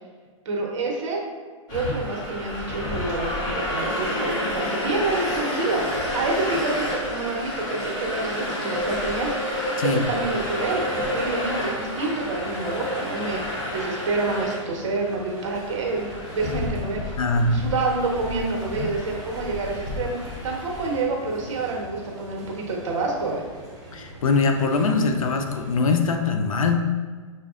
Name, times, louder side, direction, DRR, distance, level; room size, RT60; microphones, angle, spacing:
voice 1, 0.4-1.2 1.7-5.9 6.1-9.4 9.8-17.1 17.5-20.2 20.4-23.5, right 3 dB, 65° right, -1 dB, 1.1 m, -28 dB
sound 1, 1.7-21.0, left 1 dB, 25° left, 1.0 m, -30 dB
sound 2, 10.3-26.2, right 2 dB, 20° right, 1.0 m, -43 dB
voice 2, 17.2-17.6 18.8-18.9 23.9-26.8, left 4 dB, 90° left, 5 dB, 0.5 m, -22 dB
6.1 x 2.5 x 2.4 m, 1.5 s
hypercardioid pair, 140°, 17 cm